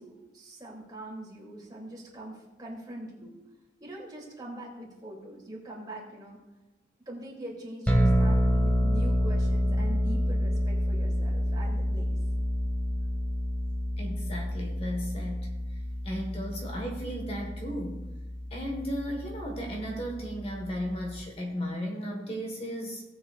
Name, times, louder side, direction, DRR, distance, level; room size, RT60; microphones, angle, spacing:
voice 1, 0.0-3.4 3.8-6.4 7.1-12.2, right 1 dB, 20° right, -3 dB, 2.8 m, -43 dB
sound 1, 7.9-21.3, equal, 10° left, 1.7 m, -28 dB
voice 2, 14.0-15.5 16.0-18.1 18.5-23.0, equal, 35° left, 1 dB, 1.5 m, -35 dB
18.0 x 7.9 x 2.4 m, 1.1 s
head